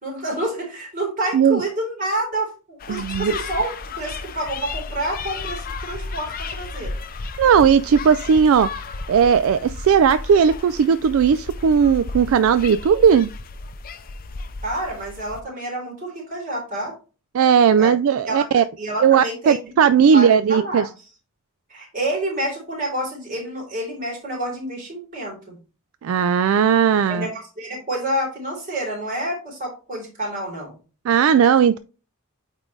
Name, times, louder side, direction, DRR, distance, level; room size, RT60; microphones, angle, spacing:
voice 1, 0.0-3.7 4.0-6.9 14.6-16.9 17.8-17.9 18.3-19.7 20.1-20.9 21.7-25.6 27.1-30.7, right 1 dB, 40° right, 3.6 m, -28 dB
sound 1, 2.8-15.4, left 3 dB, 45° left, 0.5 m, -33 dB
voice 2, 2.9-3.4 7.4-8.7 9.1-13.3 17.3-18.6 19.0-20.9 26.0-27.3 31.1-31.8, right 7 dB, 70° right, 0.3 m, -17 dB
8.8 x 3.8 x 3.2 m
head